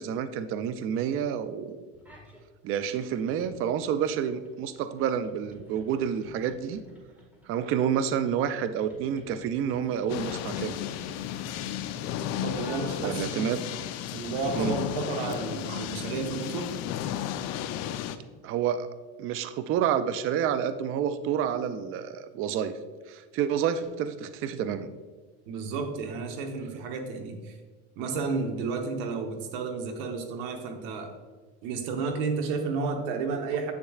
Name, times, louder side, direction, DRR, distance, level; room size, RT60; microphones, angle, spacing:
voice 1, 0.0-1.9 2.6-6.8 7.5-10.8 13.0-13.6 14.5-14.8 18.4-18.9 19.2-22.7 23.1-24.9, right 8 dB, 40° right, 12 dB, 0.4 m, -29 dB
sound 1, 1.9-2.4 2.8-13.4, left 1 dB, 5° right, 1.6 m, -53 dB
sound 2, 10.1-18.2, left 10 dB, 50° left, 0.5 m, -33 dB
voice 2, 12.4-13.5 14.1-16.7 25.5-27.6 28.0-31.1 31.6-33.7, right 4 dB, 70° right, 5 dB, 1.1 m, -32 dB
7.5 x 7.0 x 2.4 m, 1.4 s
supercardioid pair, 110°, 34 cm